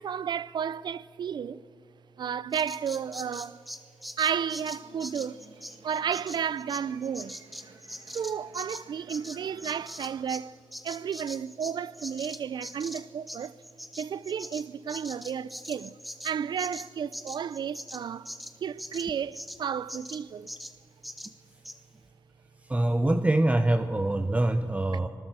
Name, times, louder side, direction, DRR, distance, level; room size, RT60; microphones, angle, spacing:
voice 1, 0.0-1.6 2.2-3.6 4.2-5.4 5.8-7.4 8.1-10.5 10.8-13.6 14.0-16.0 16.2-18.3 18.6-20.5, right 7 dB, 65° right, 0.5 m, -32 dB
Bird vocalization bird call bird song, 2.5-10.5 10.7-19.6 19.9-20.2 20.5-20.7 21.0-21.3 21.6-21.8, equal, ahead, 1.5 m, -42 dB
sound 1, 4.5-10.2, right 5 dB, 85° right, 2.7 m, -55 dB
voice 2, 22.7-25.1, right 1 dB, 15° right, 0.9 m, -24 dB
25.5 x 20.0 x 7.5 m
cardioid pair, 80°, 8 cm